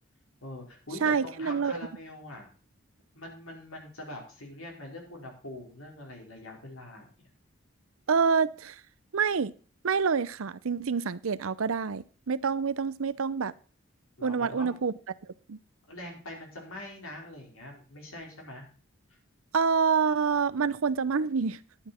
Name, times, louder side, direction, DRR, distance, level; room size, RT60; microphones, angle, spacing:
voice 1, 0.4-2.5 3.1-7.0 14.2-14.7 15.9-18.6, left 1 dB, 85° left, 0 dB, 4.5 m, -43 dB
voice 2, 1.0-1.8 8.1-8.8 9.1-9.5 9.8-13.5 14.2-14.9 15.2-15.6 19.5-21.6, right 5 dB, 80° right, 17 dB, 0.6 m, -27 dB
11.5 x 9.7 x 4.3 m, 0.39 s
head